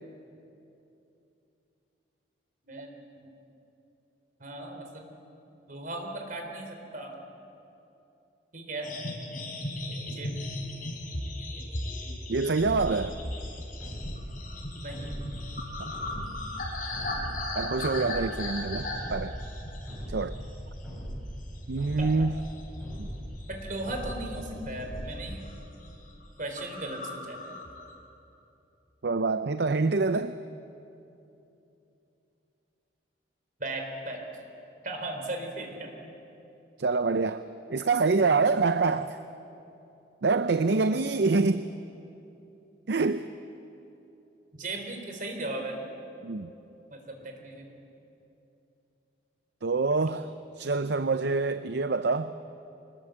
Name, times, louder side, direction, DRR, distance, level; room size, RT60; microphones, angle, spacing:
voice 1, 4.4-5.1 5.7-7.1 8.5-8.9 10.1-10.4 14.7-15.2 22.0-22.1 23.5-25.5 26.4-27.4 33.6-34.2 34.8-36.1 40.7-41.0 44.5-45.8 46.9-47.8, right 2 dB, 50° right, 3 dB, 3.8 m, -37 dB
sound 1, 8.8-20.5 20.9-21.1 21.5-23.1 23.4-24.1 24.6-24.9 25.2-25.5 25.8-25.9 26.2-26.3 26.6-27.9, left 1 dB, 50° left, 4.4 m, -37 dB
voice 2, 12.3-13.2 15.8-15.9 17.5-19.4 20.1-20.4 21.7-22.4 23.0-23.1 29.0-30.4 36.8-39.2 40.2-41.6 42.9-43.3 46.2-46.5 49.6-52.3, right 3 dB, 65° right, 11 dB, 0.6 m, -26 dB
sound 2, 12.6-25.7, equal, ahead, 6.3 m, -40 dB
24.5 x 20.0 x 7.8 m, 2.9 s
head